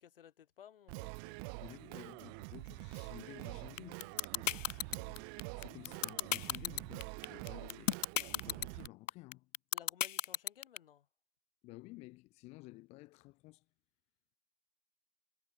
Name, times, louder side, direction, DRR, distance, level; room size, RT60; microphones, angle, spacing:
voice 1, 0.0-1.4 9.7-11.1, left 10 dB, 45° left, 3.3 m, -58 dB
Singing, 0.9-8.9, right 40 dB or more, 20° right, 1.5 m, -46 dB
voice 2, 1.6-9.5 11.6-13.7, left 21 dB, 15° left, 2.1 m, -54 dB
sound 1, 3.8-10.8, left 10 dB, 80° left, 0.6 m, -33 dB
hypercardioid pair, 155°, 38 cm